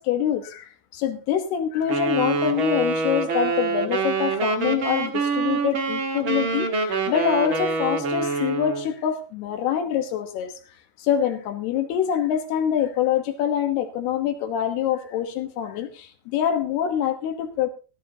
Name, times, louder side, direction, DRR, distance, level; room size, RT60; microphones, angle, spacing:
voice 1, 0.0-10.5 11.0-17.7, left 9 dB, 70° left, 6 dB, 3.0 m, -25 dB
Wind instrument woodwind instrument, 1.9-8.9, right 4 dB, 55° right, 1.4 m, -25 dB
16.0 x 15.0 x 2.8 m, 0.33 s
omnidirectional pair, 5.0 m